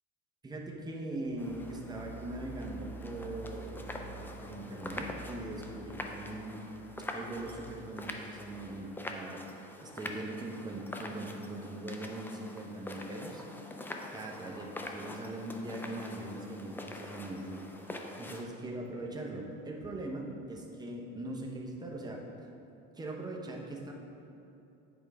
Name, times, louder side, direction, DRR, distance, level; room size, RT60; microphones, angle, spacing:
voice 1, 0.4-6.7 7.0-13.4 14.1-17.6 18.2-22.5 22.9-23.9, right 1 dB, 10° right, 0 dB, 0.8 m, -41 dB
sound 1, 1.3-8.9, right 3 dB, 40° left, 0.8 m, -49 dB
sound 2, 1.4-18.5, left 2 dB, 5° left, 0.4 m, -45 dB
Sink (filling or washing), 14.0-18.9 19.2-19.3 20.3-20.4 20.7-20.8, left 3 dB, 85° left, 0.9 m, -60 dB
8.8 x 4.8 x 3.5 m, 2.8 s
cardioid pair, 120°, 33 cm